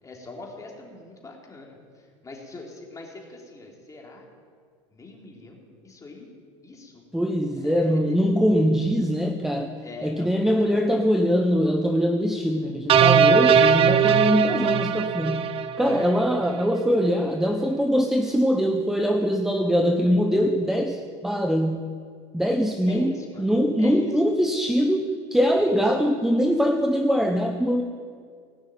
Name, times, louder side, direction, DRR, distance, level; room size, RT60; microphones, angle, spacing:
voice 1, 0.0-4.3 4.9-6.3 6.6-7.0 7.5-8.2 9.8-11.0 15.9-16.2 22.9-23.5 23.8-24.2 25.6-25.8, left 2 dB, 20° left, -1 dB, 3.3 m, -42 dB
voice 2, 7.1-9.7 10.0-15.5 15.8-21.9 22.3-23.1 23.4-27.8, equal, ahead, 5 dB, 0.9 m, -22 dB
sound 1, 12.9-16.2, right 7 dB, 35° right, 0.8 m, -19 dB
18.0 x 6.3 x 9.1 m, 2.1 s
hypercardioid pair, 95°, 16 cm